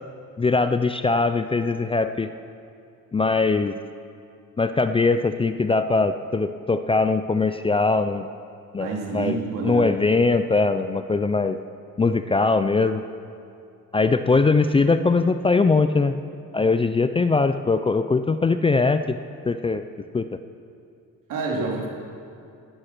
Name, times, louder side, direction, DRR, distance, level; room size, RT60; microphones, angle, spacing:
voice 1, 0.4-2.3 3.1-3.8 4.6-8.3 8.7-9.4 9.6-11.6 12.0-13.0 13.9-16.2 16.5-19.2 19.5-19.8 20.1-20.3, left 3 dB, 15° left, 10 dB, 0.4 m, -21 dB
voice 2, 8.8-10.0 21.3-21.9, right 3 dB, 75° right, -2 dB, 3.5 m, -28 dB
18.0 x 12.0 x 6.0 m, 2.5 s
cardioid pair, 135°, 32 cm